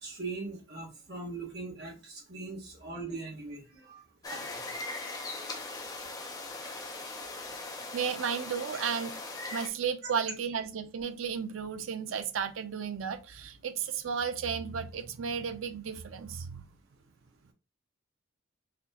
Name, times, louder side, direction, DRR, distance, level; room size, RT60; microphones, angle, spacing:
voice 1, 0.0-4.0 4.3-4.4, right 3 dB, 55° right, 1.4 m, -40 dB
sound 1, 4.2-9.7, left 2 dB, 20° left, 0.6 m, -40 dB
voice 2, 7.9-9.2 9.5-16.7, right 7 dB, 80° right, 0.5 m, -34 dB
4.3 x 3.0 x 2.7 m
head